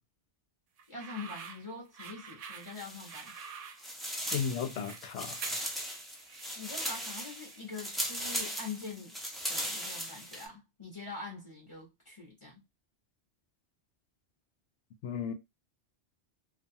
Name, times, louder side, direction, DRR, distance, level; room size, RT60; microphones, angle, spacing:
sound 1, 0.8-8.3, right 6 dB, 70° right, 0.3 m, -48 dB
voice 1, 0.9-3.4 6.5-9.2 9.5-12.6, left 4 dB, 30° left, 0.9 m, -44 dB
sound 2, 2.6-3.5 3.8-10.5, equal, ahead, 0.4 m, -38 dB
voice 2, 4.3-5.4 15.0-15.3, left 7 dB, 80° left, 0.9 m, -34 dB
2.6 x 2.3 x 2.6 m
omnidirectional pair, 1.2 m